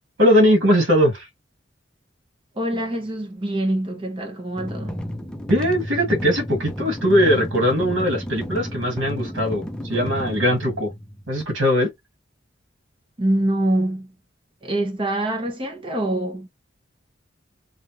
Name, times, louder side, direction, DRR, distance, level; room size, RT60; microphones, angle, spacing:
voice 1, 0.2-1.3 5.5-10.9 11.3-11.9, equal, 85° right, 1.7 m, -20 dB
voice 2, 2.5-5.0 13.2-14.1 14.6-16.5, right 1 dB, 25° right, 1.0 m, -25 dB
sound 1, 4.6-11.4, equal, 5° left, 0.4 m, -32 dB
3.3 x 2.7 x 2.8 m
head